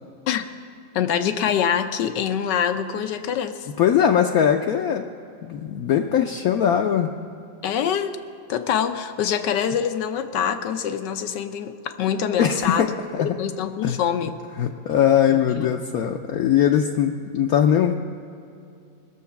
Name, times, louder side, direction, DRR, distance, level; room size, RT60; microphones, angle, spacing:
voice 1, 0.9-3.7 7.6-8.2 8.5-12.9 13.4-14.4 15.3-15.7, left 8 dB, 85° left, 8 dB, 1.4 m, -25 dB
voice 2, 3.8-5.1 5.5-7.1 12.4-13.3 13.8-14.0 14.6-17.9, left 9 dB, 70° left, 3 dB, 1.0 m, -20 dB
19.0 x 7.2 x 5.8 m, 2.5 s
omnidirectional pair, 1.9 m